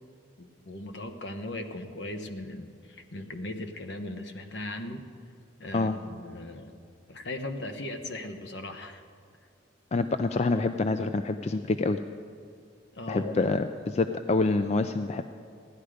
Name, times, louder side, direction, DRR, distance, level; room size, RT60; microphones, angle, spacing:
voice 1, 0.4-5.0 5.6-6.8 7.1-9.0 12.9-13.4, left 1 dB, 65° left, 6 dB, 1.0 m, -38 dB
voice 2, 9.9-12.0 13.1-15.2, left 3 dB, 35° left, 9 dB, 0.4 m, -26 dB
16.0 x 11.5 x 5.0 m, 2.4 s
head